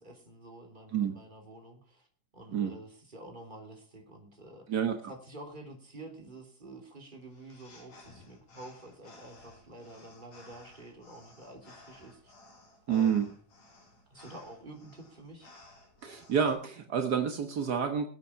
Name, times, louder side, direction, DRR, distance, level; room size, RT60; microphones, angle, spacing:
voice 1, 0.0-2.1 2.3-4.7 5.1-12.3 12.9-13.3 14.1-15.5, right 2 dB, 15° right, 3 dB, 2.8 m, -49 dB
sound 1, 7.2-16.5, left 2 dB, 75° left, 6.4 m, -56 dB
voice 2, 12.9-13.2 16.0-18.1, right 7 dB, 60° right, 5 dB, 1.0 m, -28 dB
21.0 x 8.5 x 5.7 m, 0.43 s
omnidirectional pair, 3.7 m